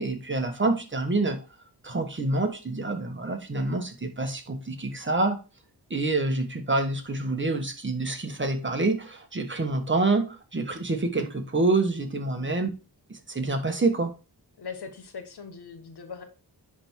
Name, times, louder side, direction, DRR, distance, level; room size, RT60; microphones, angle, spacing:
voice 1, 0.0-1.4 1.8-5.4 5.9-12.7 13.1-14.1, right 2 dB, 30° right, 5 dB, 1.3 m, -27 dB
voice 2, 14.6-16.2, left 5 dB, 65° left, 6 dB, 1.4 m, -41 dB
10.0 x 3.6 x 4.6 m, 0.32 s
wide cardioid pair, 125°, 41 cm